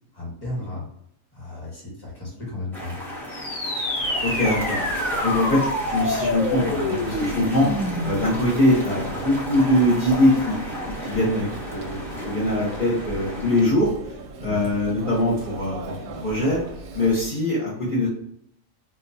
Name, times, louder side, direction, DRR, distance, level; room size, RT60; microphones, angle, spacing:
voice 1, 0.1-0.8 1.3-3.0 14.4-14.6, left 2 dB, 15° left, -4 dB, 1.3 m, -34 dB
sound 1, 2.7-13.7, equal, ahead, 0.6 m, -33 dB
sound 2, 3.3-8.3, left 1 dB, 90° left, 1.3 m, -27 dB
Chatter, 4.0-17.3, right 2 dB, 80° right, 1.0 m, -38 dB
voice 2, 4.2-4.8 5.2-5.6 5.9-7.7 8.0-10.5 11.0-16.6 16.9-18.1, left 1 dB, 40° left, -8 dB, 1.0 m, -22 dB
4.1 x 2.2 x 2.7 m, 0.72 s
omnidirectional pair, 1.4 m